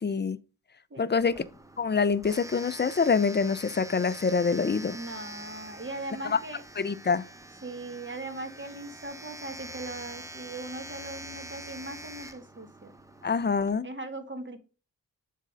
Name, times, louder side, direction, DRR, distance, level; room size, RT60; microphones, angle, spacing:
voice 1, 0.0-0.4 1.0-1.5 1.8-5.0 6.2-6.4 6.8-7.2 13.2-13.9, left 5 dB, 30° left, 0.5 m, -25 dB
Domestic sounds home sounds, 1.2-13.7, right 1 dB, 10° right, 0.8 m, -45 dB
voice 2, 4.9-6.6 7.6-12.9 13.8-14.6, right 2 dB, 30° right, 1.5 m, -39 dB
7.3 x 3.7 x 5.3 m
cardioid pair, 55°, 35 cm